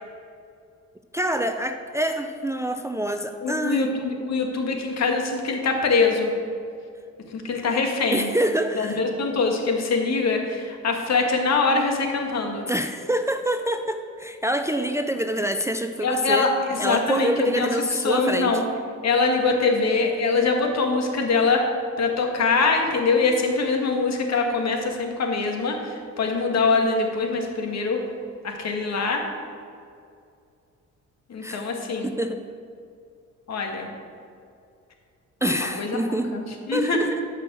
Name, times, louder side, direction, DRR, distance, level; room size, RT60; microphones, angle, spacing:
voice 1, 1.1-3.9 8.1-9.0 12.7-16.5 16.8-18.5 31.4-31.7 32.0-32.4 35.4-36.4 36.7-37.2, right 1 dB, 10° right, 6 dB, 0.5 m, -26 dB
voice 2, 3.4-6.3 7.3-8.3 8.8-12.7 16.0-18.6 19.0-21.7 22.0-28.0 28.4-29.2 31.3-32.1 33.5-33.9 35.5-36.0 36.3-37.0, left 4 dB, 60° left, 3 dB, 1.9 m, -23 dB
12.5 x 5.8 x 6.2 m, 2.4 s
cardioid pair, 90°, 30 cm